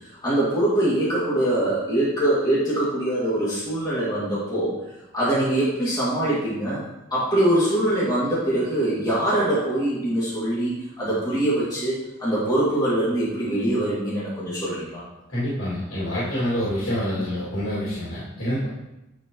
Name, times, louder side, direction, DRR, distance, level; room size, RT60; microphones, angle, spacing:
voice 1, 0.2-4.7 5.1-6.8 7.1-10.7 11.0-15.0, right 1 dB, 20° left, -10 dB, 2.3 m, -23 dB
voice 2, 15.3-18.7, equal, 80° left, -11 dB, 2.6 m, -27 dB
11.0 x 4.3 x 3.1 m, 0.95 s
head